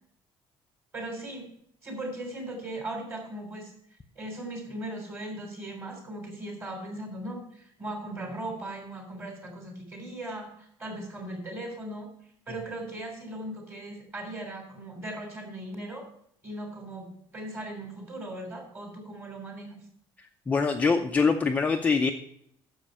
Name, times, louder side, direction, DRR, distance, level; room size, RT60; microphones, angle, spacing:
voice 1, 0.9-1.5 1.8-3.7 4.1-12.1 12.5-16.1 16.4-19.8, right 1 dB, 25° right, 2 dB, 3.4 m, -38 dB
voice 2, 20.5-22.1, left 4 dB, 15° left, 3 dB, 0.5 m, -24 dB
10.0 x 7.1 x 5.5 m, 0.68 s
cardioid pair, 170°, 10 cm